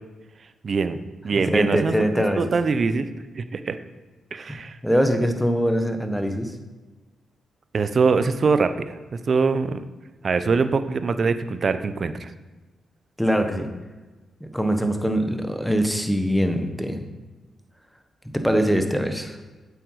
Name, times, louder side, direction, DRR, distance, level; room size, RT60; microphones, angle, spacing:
voice 1, 0.6-1.0 1.2-3.1 3.3-3.8 4.3-4.8 7.7-9.0 9.3-9.9 10.2-12.3, right 4 dB, 50° right, 11 dB, 0.7 m, -23 dB
voice 2, 1.5-2.5 4.8-6.5 13.2-13.7 14.4-17.0 18.3-19.4, equal, ahead, 6 dB, 1.2 m, -22 dB
8.0 x 8.0 x 4.8 m, 1.2 s
cardioid pair, 65°, 0 cm